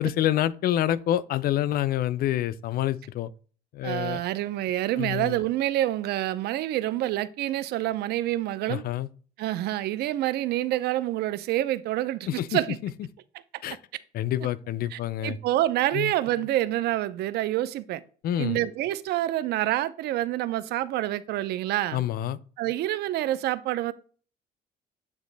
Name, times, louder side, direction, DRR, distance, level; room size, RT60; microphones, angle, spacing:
voice 1, 0.0-3.3 3.7-4.2 5.0-5.4 8.7-9.1 12.3-12.9 13.6-13.8 14.1-15.4 15.9-16.1 18.2-18.6 21.9-22.4, left 12 dB, 60° left, 0.5 m, -27 dB
voice 2, 3.8-8.8 9.4-12.8 14.9-18.0 18.4-22.0 22.6-23.9, right 14 dB, 75° right, 0.5 m, -27 dB
8.5 x 3.0 x 3.9 m
cardioid pair, 110°, 17 cm